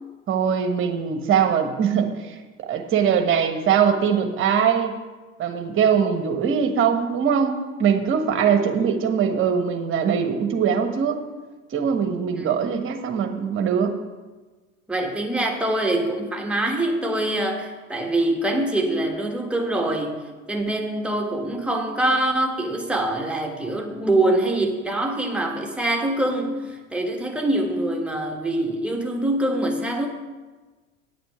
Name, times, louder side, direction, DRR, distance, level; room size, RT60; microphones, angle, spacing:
voice 1, 0.3-5.0 5.4-11.2 11.7-14.0, right 7 dB, 30° right, 6 dB, 1.3 m, -22 dB
voice 2, 8.4-8.8 12.3-12.6 14.9-20.1 20.5-30.1, right 1 dB, 5° right, 1 dB, 1.6 m, -24 dB
9.0 x 7.6 x 5.8 m, 1.3 s
figure-of-eight pair, 75°, 39 cm